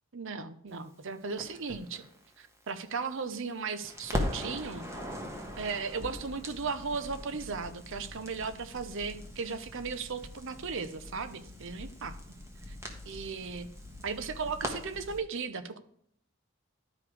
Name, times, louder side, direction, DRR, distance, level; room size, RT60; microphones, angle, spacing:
voice 1, 0.1-2.1 2.4-4.9 5.6-12.2 12.7-12.8 13.1-13.7 14.0-15.8, right 5 dB, 60° right, 11 dB, 0.7 m, -36 dB
Crackle, 1.4-3.5 3.8-15.2, left 1 dB, 15° right, 1.3 m, -41 dB
11.5 x 4.9 x 4.8 m, 0.67 s
head